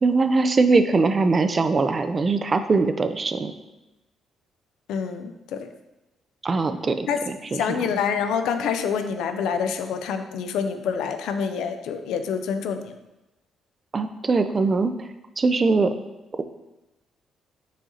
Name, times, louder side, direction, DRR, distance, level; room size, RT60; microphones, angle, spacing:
voice 1, 0.0-3.5 6.4-7.8 13.9-15.1 15.4-15.9, right 3 dB, 35° right, 9 dB, 0.4 m, -21 dB
voice 2, 4.9-5.7 7.1-7.2 7.5-12.9, left 6 dB, 85° left, 8 dB, 0.4 m, -27 dB
4.9 x 2.8 x 3.8 m, 0.99 s
cardioid pair, 90°, 0 cm